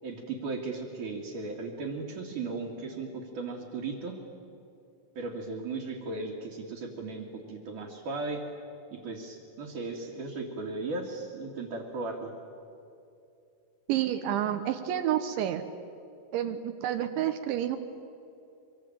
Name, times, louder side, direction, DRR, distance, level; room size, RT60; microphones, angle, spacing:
voice 1, 0.0-4.2 5.2-8.4 8.9-12.3, right 3 dB, 50° right, -3 dB, 3.2 m, -36 dB
voice 2, 13.9-15.6 16.3-17.8, right 11 dB, 80° right, 7 dB, 3.3 m, -29 dB
24.5 x 24.5 x 8.9 m, 2.6 s
omnidirectional pair, 5.4 m